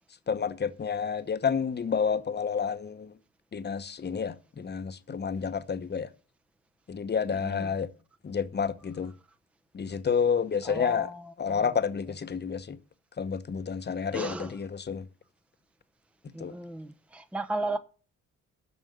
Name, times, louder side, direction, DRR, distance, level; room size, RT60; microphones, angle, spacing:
voice 1, 0.3-3.1 3.5-6.1 6.9-7.9 8.2-9.1 9.7-11.1 11.4-12.8 13.2-15.0 16.4-16.5, left 6 dB, 35° left, 1.0 m, -30 dB
voice 2, 7.3-7.7 10.6-11.8 14.1-14.6 16.3-17.8, right 2 dB, 5° right, 0.8 m, -35 dB
9.4 x 6.2 x 7.9 m
cardioid pair, 90°, 30 cm